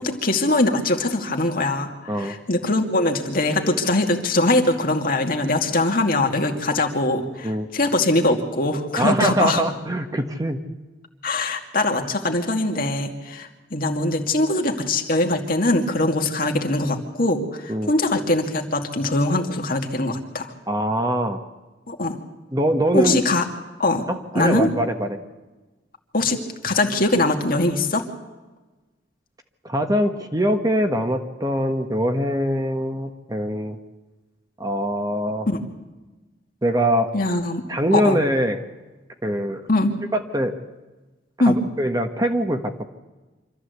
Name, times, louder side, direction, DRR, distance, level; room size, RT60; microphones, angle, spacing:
voice 1, 0.0-9.6 11.2-20.5 21.9-22.2 22.9-23.4 23.8-24.0 24.3-24.7 26.1-26.4 26.6-28.1 35.5-35.6 37.1-37.6 37.9-38.2 39.7-39.9 41.4-41.6, left 2 dB, 50° left, 3 dB, 2.4 m, -22 dB
voice 2, 9.0-10.6 17.7-17.9 20.7-21.4 22.5-23.2 24.1-25.2 29.6-33.8 34.6-35.5 36.6-37.1 37.7-38.6 39.2-39.6 40.1-40.5 41.4-42.7, equal, 20° right, 6 dB, 1.3 m, -23 dB
25.5 x 14.0 x 8.2 m, 1.2 s
head